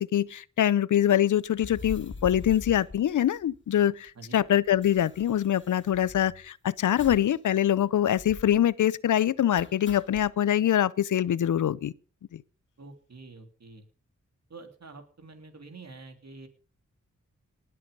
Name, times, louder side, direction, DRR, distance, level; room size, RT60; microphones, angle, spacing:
voice 1, 0.0-11.9 12.3-12.4, left 11 dB, 85° left, 0.6 m, -24 dB
sound 1, 1.6-3.8 4.1-4.2 4.4-6.5 7.0-7.4 7.7-7.8 8.2-8.6 9.6-10.3, left 3 dB, 40° left, 2.4 m, -43 dB
voice 2, 4.1-4.5 12.8-13.8 14.5-16.5, right 3 dB, 60° right, 3.2 m, -47 dB
19.0 x 7.7 x 5.4 m
cardioid pair, 60°, 30 cm